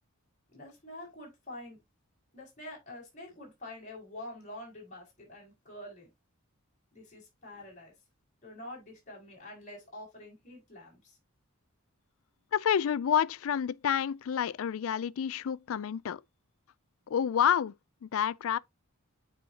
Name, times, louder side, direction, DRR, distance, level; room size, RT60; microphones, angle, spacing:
voice 1, 0.5-1.8 2.3-6.1 6.9-7.9 8.4-11.2, left 1 dB, 35° left, 4.9 m, -46 dB
voice 2, 12.5-16.2 17.1-17.7 18.0-18.6, left 8 dB, 65° left, 0.3 m, -29 dB
9.2 x 4.6 x 2.8 m
head